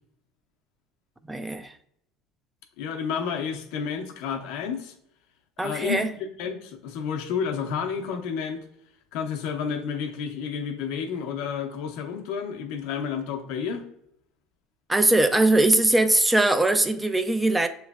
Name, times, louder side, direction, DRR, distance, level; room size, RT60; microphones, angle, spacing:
voice 1, 1.3-1.7 5.6-6.1 14.9-17.7, right 2 dB, 10° right, 0.3 m, -21 dB
voice 2, 2.8-4.9 5.6-8.6 9.1-13.8, left 6 dB, 70° left, 0.7 m, -31 dB
7.1 x 3.1 x 2.3 m
supercardioid pair, 120°, 0 cm